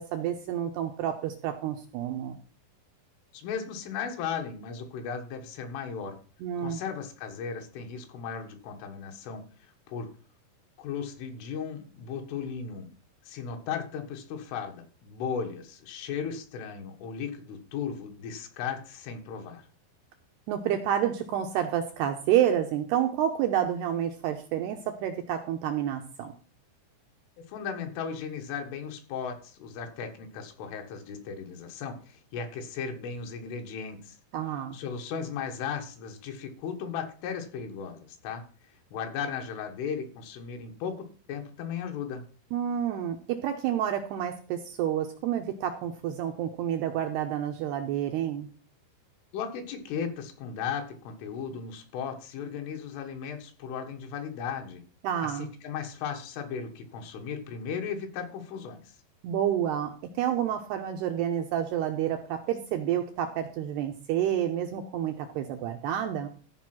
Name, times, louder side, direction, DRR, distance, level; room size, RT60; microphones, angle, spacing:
voice 1, 0.0-2.4 6.4-6.8 20.5-26.3 34.3-34.8 42.5-48.5 55.0-55.5 59.2-66.3, right 10 dB, 85° right, 5 dB, 2.4 m, -29 dB
voice 2, 3.3-6.2 6.6-10.1 10.8-12.9 13.2-19.6 27.5-34.2 34.7-38.4 38.9-42.2 49.3-54.8 55.2-59.0, left 6 dB, 75° left, 3 dB, 4.0 m, -36 dB
14.5 x 5.2 x 6.0 m, 0.40 s
omnidirectional pair, 5.7 m